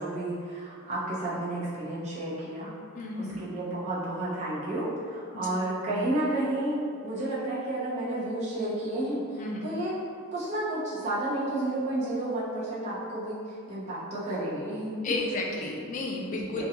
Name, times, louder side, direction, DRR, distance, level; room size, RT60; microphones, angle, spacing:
voice 1, 0.0-2.7 3.2-9.9 10.3-15.1 16.3-16.6, right 1 dB, 35° right, -9 dB, 0.7 m, -31 dB
voice 2, 2.9-3.4 5.3-5.6 9.4-9.7 15.0-16.6, left 2 dB, 35° left, -1 dB, 0.3 m, -32 dB
2.5 x 2.2 x 2.8 m, 2.2 s
head